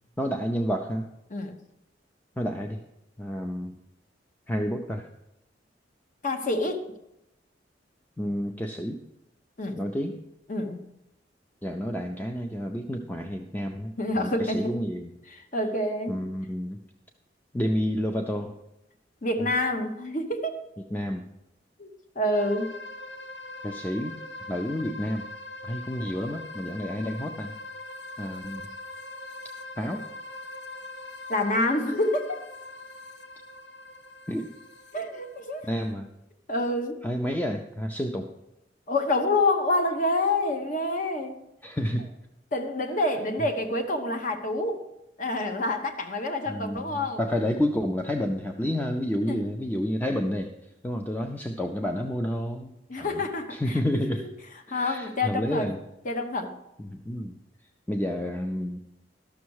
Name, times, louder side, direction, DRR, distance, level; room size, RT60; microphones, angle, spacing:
voice 1, 0.2-1.0 2.4-2.8 3.2-3.8 4.5-5.1 8.2-9.0 9.8-10.2 11.6-15.1 16.1-16.8 17.5-18.6 20.9-21.2 23.6-24.2 24.5-25.3 25.6-27.6 28.2-28.6 29.8-30.1 34.3-34.5 35.7-36.1 37.0-38.3 41.6-42.1 46.5-50.5 50.8-53.2 53.5-54.3 54.7-55.8 56.8-57.3 57.9-58.8, equal, 10° left, 4 dB, 0.5 m, -30 dB
voice 2, 6.2-6.9 9.6-9.8 10.5-10.8 14.0-14.8 15.3-16.2 19.2-20.6 21.8-21.9 22.2-22.7 27.0-27.1 31.3-32.4 34.9-35.7 36.5-37.0 38.9-41.4 42.5-44.8 45.2-47.2 49.3-49.4 52.9-53.8 54.7-55.7 56.0-56.5, left 2 dB, 45° left, 6 dB, 1.0 m, -27 dB
sound 1, 22.3-35.9, left 2 dB, 70° left, 0.9 m, -42 dB
13.0 x 6.2 x 4.7 m, 0.88 s
head